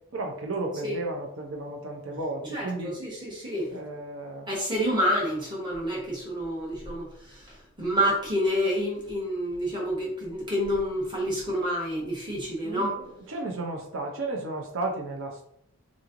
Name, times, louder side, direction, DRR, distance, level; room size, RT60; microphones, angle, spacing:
voice 1, 0.1-3.0 3.7-4.5 12.6-12.9 13.3-15.5, right 2 dB, 60° right, 1 dB, 0.6 m, -33 dB
voice 2, 2.5-3.7 4.5-7.4 7.8-13.1, equal, 20° right, -4 dB, 1.1 m, -28 dB
3.7 x 3.0 x 2.5 m, 0.69 s
head